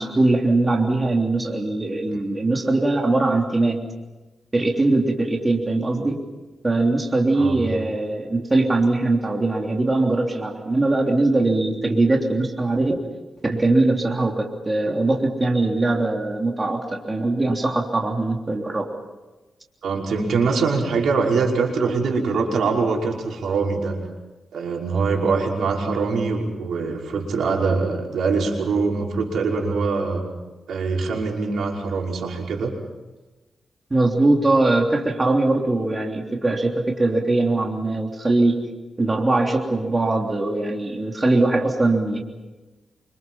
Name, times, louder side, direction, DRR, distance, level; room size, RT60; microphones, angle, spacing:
voice 1, 0.0-3.8 4.5-6.2 6.6-13.0 13.4-18.9 33.9-38.6 39.0-42.2, right 2 dB, 25° right, 1 dB, 3.3 m, -21 dB
voice 2, 19.8-24.0 24.5-30.2 30.7-32.7, right 4 dB, 80° right, 0 dB, 5.6 m, -23 dB
28.0 x 26.0 x 5.7 m, 1.2 s
cardioid pair, 100°, 0 cm